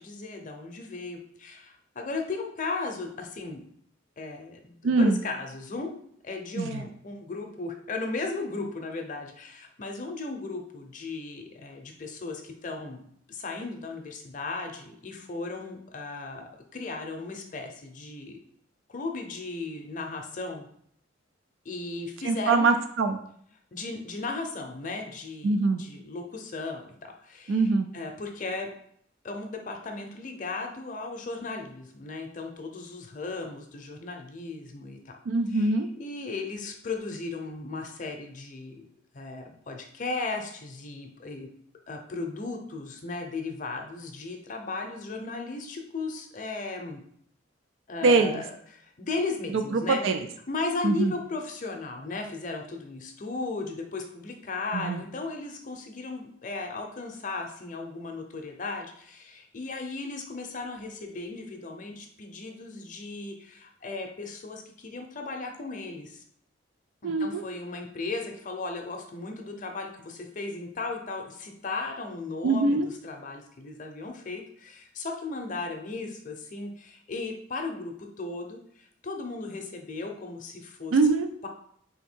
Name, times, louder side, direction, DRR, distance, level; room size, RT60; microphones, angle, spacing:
voice 1, 0.0-3.6 4.2-13.0 13.3-18.4 18.9-20.7 21.6-22.7 23.7-25.5 25.8-27.6 27.9-28.7 29.2-35.1 35.5-38.9 39.1-41.5 41.9-47.0 47.9-48.5 48.7-50.0 50.5-66.2 67.0-81.0, left 3 dB, 45° left, 3 dB, 0.6 m, -36 dB
voice 2, 4.8-5.2 6.6-6.8 22.2-23.2 25.4-25.8 27.5-27.9 35.3-35.9 48.0-48.4 49.5-50.2 50.8-51.1 54.7-55.0 67.0-67.4 72.4-72.9 80.9-81.3, right 3 dB, 85° right, 7 dB, 0.4 m, -23 dB
3.5 x 2.7 x 4.3 m, 0.66 s
head